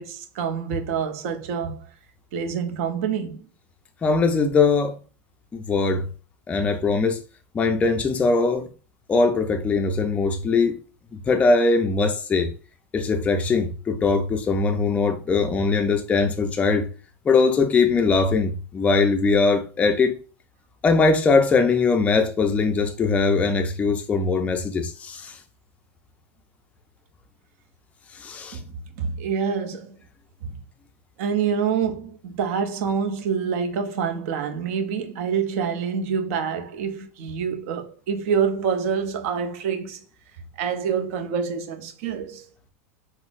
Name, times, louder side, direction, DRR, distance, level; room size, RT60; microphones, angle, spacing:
voice 1, 0.0-1.9 2.3-3.5 28.5-28.6 29.0-30.0 30.4-30.6 31.2-40.1 40.6-42.5, right 6 dB, 65° right, 0.6 m, -26 dB
voice 2, 4.0-5.0 5.5-6.1 6.5-7.2 7.5-8.7 9.1-10.8 11.3-12.5 12.9-16.9 17.3-20.2 20.8-25.4 28.2-28.6, left 4 dB, 15° left, 0.4 m, -21 dB
3.7 x 2.0 x 2.4 m
supercardioid pair, 120°, 8 cm